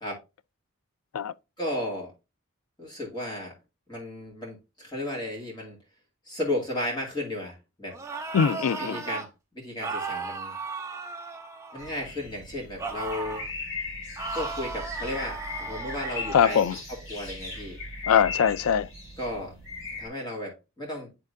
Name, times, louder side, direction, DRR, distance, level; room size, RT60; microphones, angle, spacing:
voice 1, 1.6-2.1 2.8-3.6 3.9-5.8 6.3-8.0 8.8-10.5 11.7-13.5 14.3-16.6 17.1-17.8 19.2-19.5 20.0-21.1, left 1 dB, 20° left, 2.2 m, -34 dB
sound 1, 7.9-9.3 9.8-12.1 12.8-13.5 14.2-16.6, right 4 dB, 15° right, 0.7 m, -35 dB
voice 2, 8.3-9.0 16.3-16.8 18.1-18.9, left 8 dB, 80° left, 0.4 m, -22 dB
sound 2, 11.8-20.1, left 3 dB, 60° left, 2.8 m, -38 dB
10.5 x 3.6 x 2.6 m
head